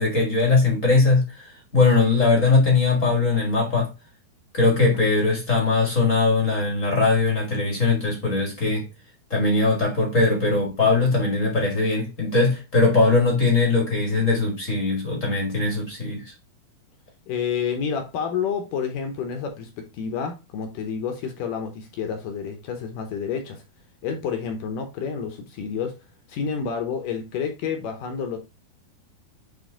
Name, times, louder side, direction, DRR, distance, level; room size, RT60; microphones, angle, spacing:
voice 1, 0.0-3.9 4.5-8.9 9.3-16.3, left 3 dB, 40° left, 1.1 m, -20 dB
voice 2, 17.3-23.6 24.0-25.9 26.3-28.4, left 6 dB, 70° left, 2.1 m, -29 dB
8.2 x 3.7 x 3.8 m
omnidirectional pair, 4.7 m